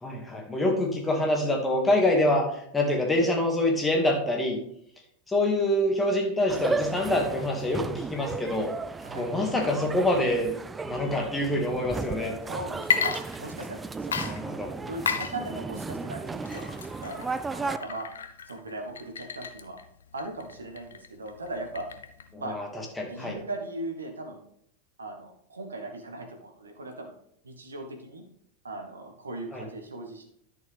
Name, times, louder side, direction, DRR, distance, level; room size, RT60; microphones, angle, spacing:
voice 1, 0.0-2.5 2.7-4.6 5.3-8.7 9.2-10.5 10.8-12.3 14.3-14.7 22.3-22.7 23.0-23.4 29.5-29.6, left 1 dB, 10° left, 1 dB, 2.0 m, -25 dB
sound 1, 6.5-17.8, right 4 dB, 15° right, 0.4 m, -35 dB
voice 2, 9.0-9.6 12.4-14.4 14.8-16.7 17.0-18.1 18.4-19.8 20.1-21.9 22.4-22.6 23.0-24.4 25.0-27.1 27.4-28.2 28.6-30.2, right 2 dB, 75° right, 4 dB, 1.5 m, -38 dB
Water / Liquid, 12.8-13.8 14.1-22.3, left 7 dB, 65° left, 0.6 m, -33 dB
11.0 x 6.6 x 3.4 m, 0.69 s
figure-of-eight pair, 90°, 0 cm